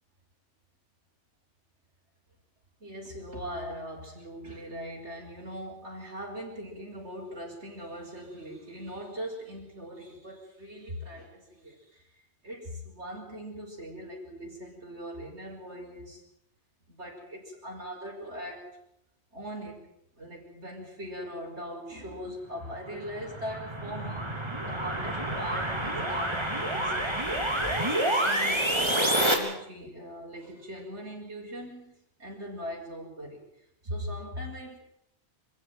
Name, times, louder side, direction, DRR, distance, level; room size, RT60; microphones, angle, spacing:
voice 1, 2.8-16.2 16.9-18.7 19.3-19.9 20.1-24.3 24.7-26.5 26.7-27.0 27.7-33.4 33.8-34.8, equal, 75° right, -3 dB, 6.4 m, -40 dB
sound 1, 22.8-29.3, right 1 dB, 25° right, 4.0 m, -28 dB
26.0 x 15.5 x 9.3 m, 0.78 s
omnidirectional pair, 1.1 m